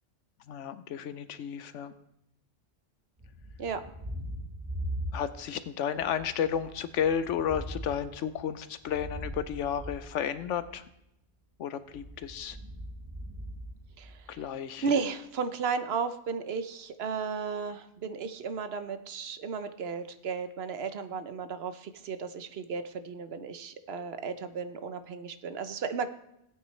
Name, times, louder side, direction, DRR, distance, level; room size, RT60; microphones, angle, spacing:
voice 1, 0.5-1.9 5.1-10.8 11.6-12.6 14.3-14.9, left 8 dB, 90° left, 12 dB, 1.0 m, -32 dB
Thunder, 3.2-5.6 5.9-10.8 11.8-14.5, equal, 25° right, 1.0 m, -41 dB
voice 2, 14.0-14.4 14.8-26.1, right 5 dB, 65° right, 10 dB, 0.9 m, -34 dB
16.5 x 9.2 x 3.2 m, 0.81 s
omnidirectional pair, 1.2 m